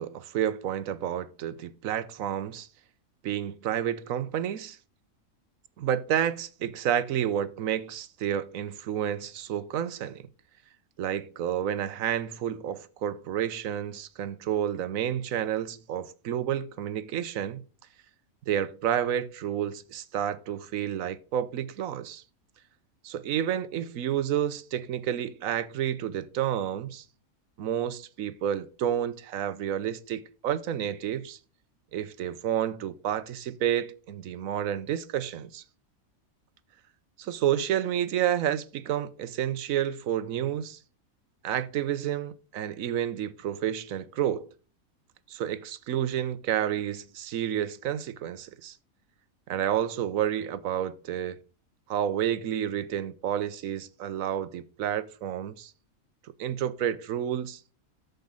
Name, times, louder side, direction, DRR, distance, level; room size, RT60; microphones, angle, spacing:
voice 1, 0.0-2.7 3.2-4.8 5.8-10.2 11.0-17.6 18.5-22.2 23.0-27.0 27.6-31.4 31.9-35.6 37.2-40.8 41.4-44.5 45.3-48.8 49.5-51.4 51.9-55.7 56.4-57.6, right 10 dB, 70° right, 1.2 m, -30 dB
13.5 x 5.3 x 3.8 m
omnidirectional pair, 1.5 m